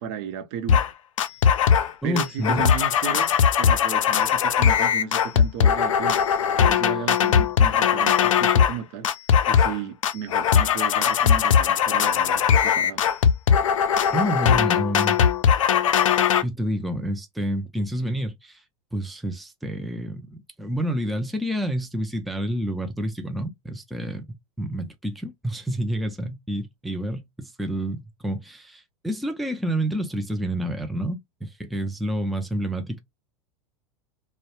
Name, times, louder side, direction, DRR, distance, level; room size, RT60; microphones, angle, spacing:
voice 1, 0.0-0.8 2.0-6.2 6.6-9.1 9.4-13.0, right 8 dB, 60° right, 0.7 m, -34 dB
sound 1, 0.7-0.9 1.2-1.9 2.2-8.8 9.0-9.8 10.0-16.4, left 8 dB, 85° left, 0.4 m, -20 dB
voice 2, 2.0-2.7 14.1-15.2 16.4-18.6 18.9-33.0, equal, ahead, 0.4 m, -29 dB
2.2 x 2.1 x 2.9 m
hypercardioid pair, 100°, 16 cm